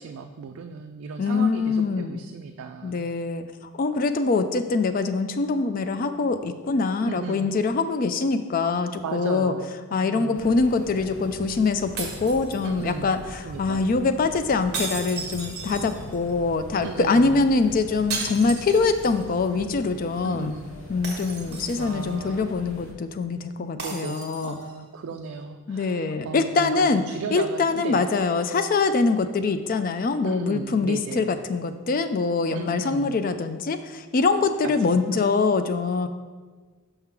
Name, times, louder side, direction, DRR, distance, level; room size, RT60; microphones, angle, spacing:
voice 1, 0.0-3.1 7.0-7.5 9.0-10.4 12.6-13.8 16.8-17.5 20.2-20.7 21.8-22.5 23.8-28.0 30.2-31.3 32.5-33.3 34.6-35.2, right 5 dB, 75° right, 5 dB, 0.3 m, -36 dB
voice 2, 1.2-2.2 2.8-3.4 3.8-9.5 9.9-20.5 20.9-24.5 25.7-27.0 27.3-36.1, left 4 dB, 40° left, 9 dB, 0.3 m, -24 dB
sound 1, 10.3-22.9, equal, 75° left, 0.9 m, -42 dB
sound 2, 12.0-13.0 14.7-16.3 18.1-19.3 19.6-19.7 21.0-22.1 23.8-24.7, right 4 dB, 50° right, 1.1 m, -35 dB
5.4 x 3.7 x 5.8 m, 1.4 s
head